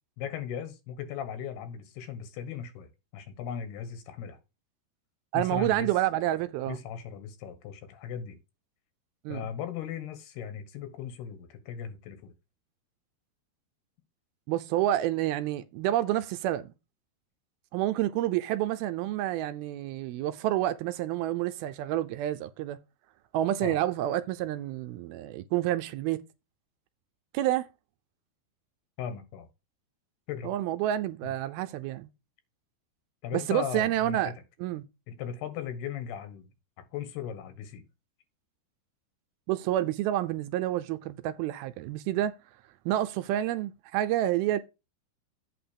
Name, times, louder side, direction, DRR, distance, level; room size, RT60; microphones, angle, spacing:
voice 1, 0.2-4.4 5.3-5.9 6.7-8.4 9.3-12.3 23.6-23.8 29.0-29.5 30.3-30.6 31.2-31.3 33.2-34.3 35.1-36.5 36.9-37.9, left 8 dB, 80° left, 3.5 m, -37 dB
voice 2, 5.3-6.8 9.3-9.5 14.5-16.7 17.7-22.8 23.3-26.2 27.3-27.7 30.4-32.1 33.3-34.3 34.6-34.8 39.5-42.4 42.9-44.6, right 13 dB, 80° right, 2.4 m, -29 dB
8.5 x 3.9 x 6.8 m
omnidirectional pair, 4.6 m